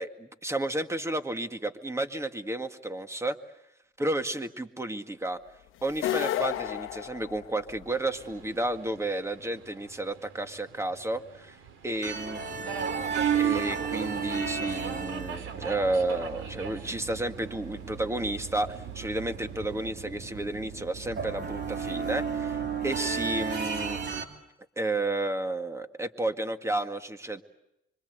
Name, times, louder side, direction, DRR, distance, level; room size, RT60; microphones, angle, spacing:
voice 1, 0.0-3.4 4.0-5.4 5.8-11.6 11.8-12.4 13.0-24.0 24.8-27.4, right 2 dB, 15° right, 8 dB, 1.9 m, -32 dB
sound 1, 5.9-7.9, left 13 dB, 90° left, 1.0 m, -31 dB
Subway metro underground, 7.9-19.9, right 6 dB, 80° right, 3.0 m, -43 dB
sound 2, 12.0-24.2, right 7 dB, 60° right, 3.1 m, -33 dB
25.5 x 25.0 x 8.2 m, 0.84 s
cardioid pair, 90°, 20 cm